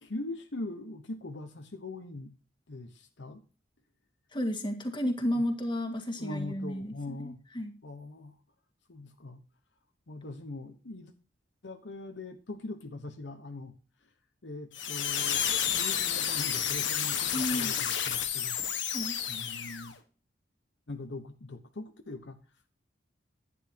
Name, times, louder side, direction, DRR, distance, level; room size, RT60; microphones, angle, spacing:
voice 1, 0.0-2.3 2.7-3.4 5.3-5.4 6.2-7.4 7.8-8.4 8.9-9.4 10.1-11.1 11.6-13.7 14.4-18.6 19.3-20.0 20.9-22.4, left 2 dB, 70° left, 7 dB, 1.1 m, -41 dB
voice 2, 4.3-7.7 17.3-17.7 18.9-19.2, equal, 25° left, 5 dB, 1.8 m, -32 dB
sound 1, 14.7-19.9, left 9 dB, 85° left, 1.4 m, -31 dB
11.0 x 9.8 x 2.9 m, 0.37 s
head